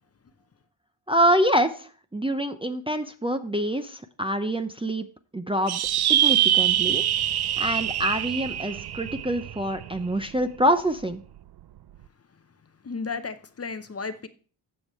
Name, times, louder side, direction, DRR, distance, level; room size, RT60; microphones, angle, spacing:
voice 1, 1.1-5.1 5.3-5.8 6.1-7.1 7.6-11.2, right 1 dB, 10° right, 0.6 m, -26 dB
sound 1, 5.7-10.4, right 11 dB, 55° right, 0.5 m, -24 dB
voice 2, 12.8-14.3, left 4 dB, 30° left, 0.7 m, -33 dB
15.5 x 5.3 x 3.1 m
cardioid pair, 90°, 45 cm